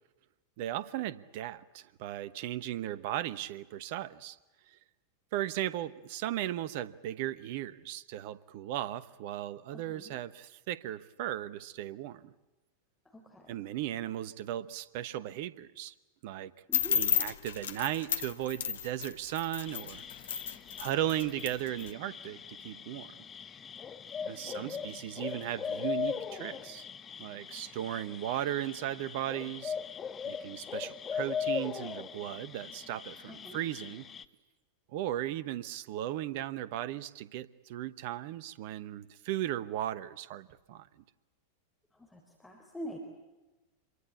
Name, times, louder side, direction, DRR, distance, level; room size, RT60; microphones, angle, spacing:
voice 1, 0.6-4.4 4.7-4.8 5.3-12.3 13.5-15.9 16.2-16.5 16.9-20.0 20.8-23.1 24.3-26.8 27.2-29.7 30.3-34.1 34.9-40.9, right 13 dB, 50° right, 17 dB, 1.1 m, -36 dB
voice 2, 9.7-10.1 13.3-13.4 16.7-17.0 24.2-24.8 33.3-33.6 42.1-43.0, equal, 5° left, 1 dB, 4.0 m, -45 dB
sound 1, 16.7-21.9, left 9 dB, 60° left, 1.2 m, -32 dB
sound 2, 19.7-34.2, left 7 dB, 25° left, 1.2 m, -40 dB
26.5 x 23.0 x 8.5 m, 1.1 s
figure-of-eight pair, 90°, 0 cm